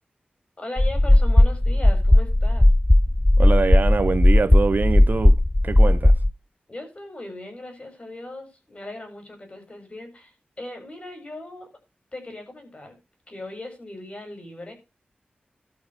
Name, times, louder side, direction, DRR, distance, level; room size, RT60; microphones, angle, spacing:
voice 1, 0.6-2.7 6.7-11.7 12.1-13.0 13.3-14.7, left 2 dB, 35° left, 7.6 m, -38 dB
sound 1, 0.8-6.3, left 1 dB, 10° left, 0.5 m, -16 dB
voice 2, 3.4-6.1, right 4 dB, 60° right, 0.7 m, -24 dB
12.5 x 7.7 x 5.2 m
wide cardioid pair, 70°, 3 cm